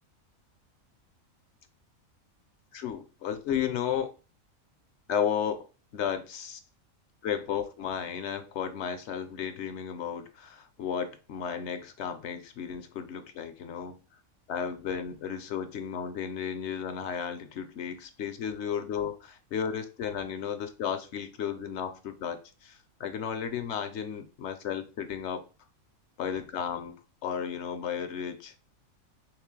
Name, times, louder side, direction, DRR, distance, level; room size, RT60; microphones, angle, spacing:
voice 1, 2.7-4.1 5.1-5.6 5.9-6.6 7.2-14.0 14.5-25.4 26.2-27.0 27.2-28.6, left 8 dB, 65° left, 0.8 m, -33 dB
3.3 x 3.1 x 3.7 m
omnidirectional pair, 1.4 m